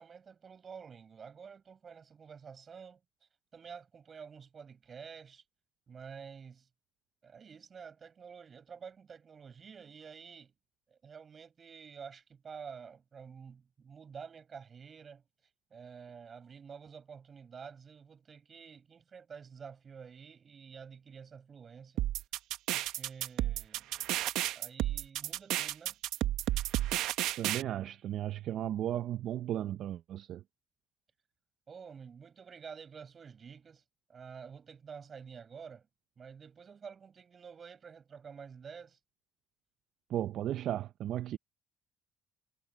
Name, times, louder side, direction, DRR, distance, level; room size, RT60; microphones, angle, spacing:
voice 1, 0.0-3.0 3.5-5.4 5.9-6.7 7.2-10.5 10.9-15.2 15.7-22.0 22.7-24.0 24.5-26.0 31.7-33.8 34.1-35.9 36.2-39.0, right 6 dB, 40° right, 4.7 m, -49 dB
sound 1, 22.0-27.6, right 14 dB, 85° right, 0.9 m, -32 dB
voice 2, 27.4-30.4 40.1-41.4, right 12 dB, 65° right, 0.6 m, -35 dB
cardioid pair, 105°, 0 cm